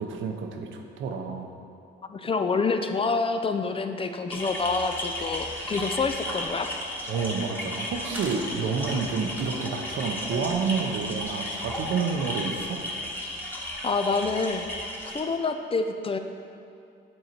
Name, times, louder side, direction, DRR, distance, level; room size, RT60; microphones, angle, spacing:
voice 1, 0.0-1.5 7.1-12.8, right 5 dB, 75° right, 4 dB, 0.7 m, -29 dB
voice 2, 2.1-6.7 13.8-14.6 15.1-16.2, left 4 dB, 30° left, 7 dB, 0.4 m, -27 dB
sound 1, 4.3-15.2, left 1 dB, 10° left, 1.3 m, -34 dB
sound 2, 8.1-13.0, equal, 10° right, 1.1 m, -47 dB
7.7 x 3.9 x 4.4 m, 2.5 s
cardioid pair, 90°, 20 cm